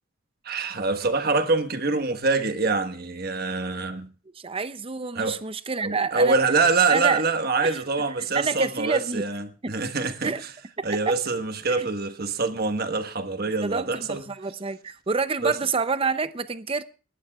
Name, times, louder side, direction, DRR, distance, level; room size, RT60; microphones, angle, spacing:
voice 1, 0.4-4.1 5.1-5.4 5.8-10.3 10.8-14.2 15.4-15.5, right 3 dB, 50° right, 1.3 m, -25 dB
voice 2, 4.3-6.4 6.9-7.2 7.6-7.8 8.3-9.2 9.6-9.8 10.2-10.4 10.8-11.1 11.7-11.9 13.6-16.8, right 4 dB, 30° right, 0.6 m, -28 dB
29.0 x 11.5 x 2.4 m
head